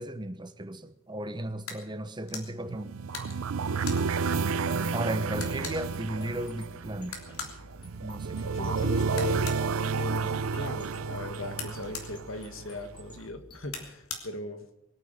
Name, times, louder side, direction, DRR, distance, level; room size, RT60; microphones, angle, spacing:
voice 1, 0.0-2.9 4.9-7.2 8.0-8.7, right 1 dB, 20° right, 1.0 m, -35 dB
sound 1, 1.6-1.8 2.2-2.5 3.1-4.0 4.7-4.8 5.0-5.1 5.4-5.8 7.0-7.6 9.1-9.6 11.5-12.1 13.7-14.2, left 5 dB, 90° left, 3.2 m, -39 dB
sound 2, 2.7-12.8, right 5 dB, 75° right, 0.6 m, -31 dB
voice 2, 3.7-4.2 8.5-14.7, left 2 dB, 65° left, 2.0 m, -39 dB
sound 3, 5.3-13.9, equal, 20° left, 3.9 m, -51 dB
23.0 x 9.4 x 6.6 m
head